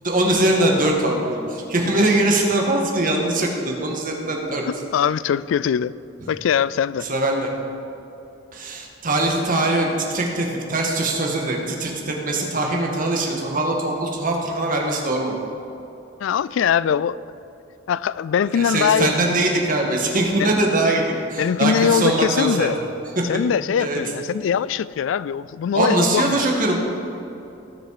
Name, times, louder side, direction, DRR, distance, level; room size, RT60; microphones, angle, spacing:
voice 1, 0.0-4.6 7.0-7.5 8.5-15.4 18.5-21.0 21.3-22.7 23.2-23.3 23.8-24.0 25.7-26.8, right 2 dB, 45° right, 0 dB, 1.7 m, -22 dB
voice 2, 4.9-6.0 6.3-7.1 16.2-17.2 17.9-19.1 20.4-20.5 21.4-22.8 23.3-26.4, left 7 dB, 75° left, 19 dB, 0.3 m, -21 dB
18.5 x 6.2 x 4.8 m, 2.8 s
head